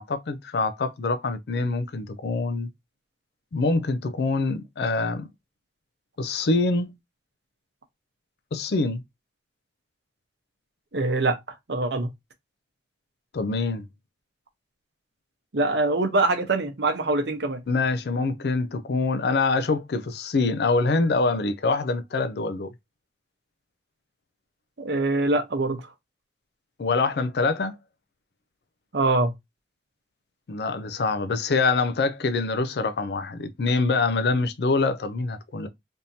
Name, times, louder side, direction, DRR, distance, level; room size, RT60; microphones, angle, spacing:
voice 1, 0.0-2.7 3.5-5.3 6.2-6.9 8.5-9.0 13.3-13.8 17.7-22.7 26.8-27.8 30.5-35.7, left 3 dB, 60° left, 0.4 m, -25 dB
voice 2, 10.9-11.4 11.7-12.1 15.5-17.6 24.8-25.8 28.9-29.3, right 2 dB, 70° right, 0.8 m, -23 dB
3.5 x 2.7 x 2.6 m
head